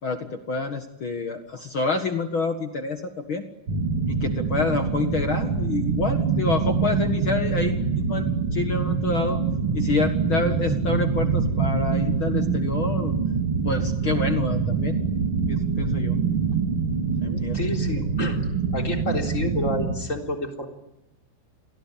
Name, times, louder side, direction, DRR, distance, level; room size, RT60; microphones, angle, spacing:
voice 1, 0.0-3.4 4.1-9.4 9.7-13.1 13.6-15.0 15.5-16.2 17.2-17.6, left 4 dB, 60° left, 7 dB, 1.3 m, -28 dB
sound 1, 3.7-20.0, right 5 dB, 40° right, 2.3 m, -25 dB
voice 2, 17.0-18.4 18.7-20.7, left 1 dB, 20° left, 3 dB, 3.5 m, -30 dB
29.5 x 22.5 x 8.6 m, 0.89 s
omnidirectional pair, 5.1 m